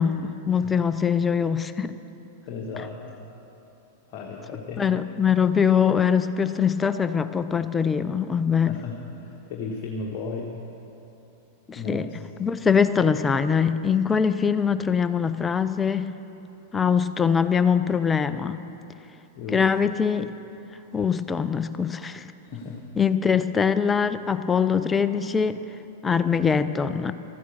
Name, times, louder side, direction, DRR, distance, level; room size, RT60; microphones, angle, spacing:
voice 1, 0.0-1.9 4.8-8.7 11.7-12.1 12.4-16.1 16.7-18.6 19.5-20.3 20.9-22.3 23.0-25.6 26.0-27.1, left 6 dB, 15° left, 12 dB, 0.5 m, -23 dB
voice 2, 2.5-3.0 4.1-4.9 8.7-10.5 11.7-12.2 19.4-19.6 22.4-22.8, left 4 dB, 45° left, -1 dB, 1.3 m, -35 dB
14.0 x 9.5 x 6.9 m, 3.0 s
figure-of-eight pair, 95°, 0 cm